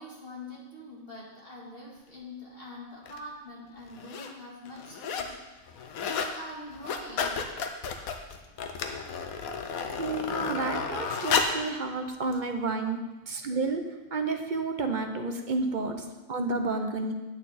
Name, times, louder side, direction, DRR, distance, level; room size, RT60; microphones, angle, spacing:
voice 1, 0.0-5.8 6.1-7.4 16.0-16.1, left 1 dB, 40° left, -5 dB, 2.1 m, -44 dB
sound 1, 3.1-3.2 3.9-4.3 4.7-5.4 5.7-6.4 6.7-11.7 12.3-12.4, left 5 dB, 80° left, 1.3 m, -32 dB
voice 2, 10.0-13.0 13.3-13.9 14.1-16.0 16.3-17.1, right 3 dB, 40° right, 5 dB, 0.8 m, -30 dB
9.0 x 8.7 x 4.2 m, 1.1 s
omnidirectional pair, 1.5 m